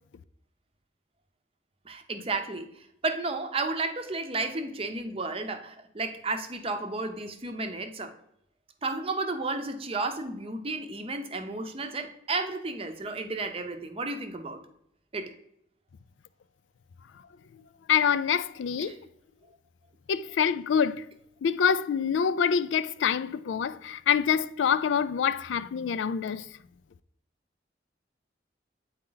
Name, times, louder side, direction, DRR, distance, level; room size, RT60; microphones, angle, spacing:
voice 1, 1.9-8.1 8.8-14.6 15.1-15.3 18.9-19.0, right 3 dB, 30° right, 0.6 m, -32 dB
voice 2, 17.9-18.9 20.1-21.0 21.4-26.4, left 7 dB, 90° left, 0.3 m, -26 dB
8.6 x 4.3 x 3.9 m
head